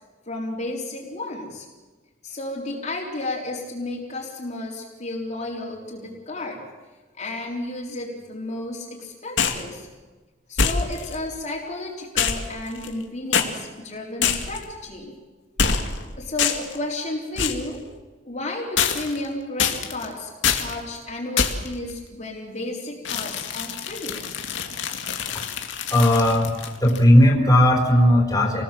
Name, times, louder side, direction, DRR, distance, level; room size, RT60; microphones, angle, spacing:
voice 1, 0.3-1.7 2.2-6.6 7.2-9.9 10.5-15.1 16.2-17.8 18.2-24.2, left 2 dB, 40° left, -3 dB, 4.0 m, -32 dB
sound 1, 9.4-9.7 10.6-11.1 12.2-13.0 13.3-13.5 14.2-14.6 15.6-16.0 16.4-16.8 17.4-17.7 18.8-19.2 19.6-20.0 20.4-20.7 21.4-21.7 23.0-27.0, left 6 dB, 85° left, 2.3 m, -25 dB
voice 2, 25.9-28.6, left 1 dB, 20° left, -1 dB, 4.7 m, -17 dB
28.5 x 20.0 x 7.7 m, 1.3 s
head